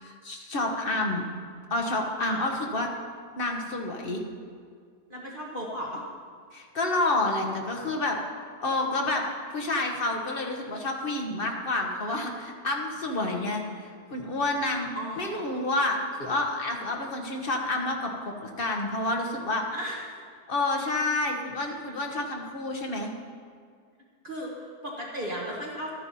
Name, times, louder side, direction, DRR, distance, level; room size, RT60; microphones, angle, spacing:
voice 1, 0.0-1.2 1.7-2.9 3.4-4.2 6.5-8.2 8.6-9.2 9.5-14.9 15.2-19.7 20.5-23.1, left 2 dB, 35° left, 1 dB, 1.4 m, -29 dB
voice 2, 5.1-6.0 14.9-15.6 19.7-20.0 24.2-25.9, equal, 35° right, -3 dB, 1.4 m, -35 dB
13.0 x 10.0 x 4.2 m, 2.1 s
omnidirectional pair, 1.7 m